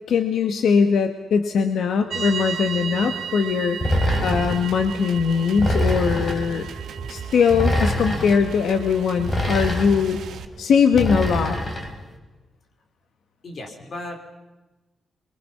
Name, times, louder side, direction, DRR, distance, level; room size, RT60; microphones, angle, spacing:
voice 1, 0.1-6.7 7.1-10.2 10.6-11.6, left 6 dB, 70° left, 7 dB, 1.3 m, -21 dB
sound 1, 2.1-9.7, right 8 dB, 55° right, 0.9 m, -35 dB
sound 2, 3.8-4.7 5.6-6.5 7.5-8.4 9.2-10.1 10.9-11.9, left 1 dB, 25° left, 3.5 m, -24 dB
sound 3, 3.9-10.4, right 7 dB, 85° right, 1.9 m, -38 dB
voice 2, 13.4-14.2, left 1 dB, 40° left, 3 dB, 4.0 m, -35 dB
28.0 x 22.5 x 5.8 m, 1.1 s
wide cardioid pair, 180°, 0 cm